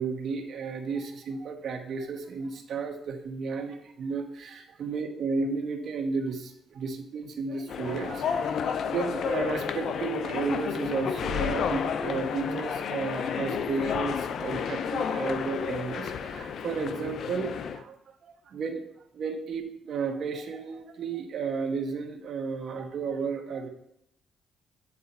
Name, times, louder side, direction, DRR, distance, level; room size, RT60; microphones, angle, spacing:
voice 1, 0.0-18.9 19.1-23.7, right 5 dB, 60° right, 4 dB, 1.2 m, -33 dB
sound 1, 7.7-17.8, left 7 dB, 65° left, 0.5 m, -31 dB
8.4 x 4.1 x 5.4 m, 0.75 s
cardioid pair, 90°, 0 cm